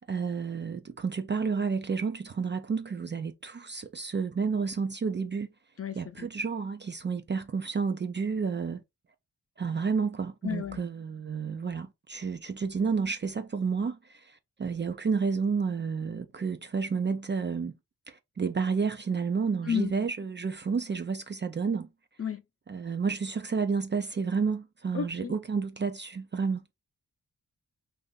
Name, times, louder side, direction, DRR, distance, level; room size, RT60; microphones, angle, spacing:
voice 1, 0.1-5.5 6.0-8.8 9.6-17.7 18.1-21.9 22.7-26.8, right 5 dB, 30° right, 0.5 m, -30 dB
voice 2, 5.8-6.3 10.4-10.8 19.6-19.9 22.2-22.4 24.9-25.3, left 8 dB, 35° left, 0.7 m, -32 dB
2.6 x 2.6 x 3.9 m
supercardioid pair, 45°, 38 cm